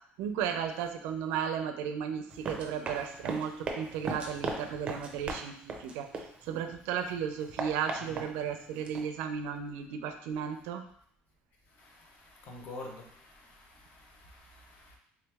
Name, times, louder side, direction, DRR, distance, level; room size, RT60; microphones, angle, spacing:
voice 1, 0.2-6.1 6.4-10.8, right 8 dB, 90° right, 0.4 m, -34 dB
Run, 2.3-6.7 7.1-9.0, right 3 dB, 30° right, 0.5 m, -38 dB
voice 2, 11.8-15.0, left 2 dB, 40° left, 0.8 m, -48 dB
3.4 x 3.0 x 3.4 m
cardioid pair, 170°, 4 cm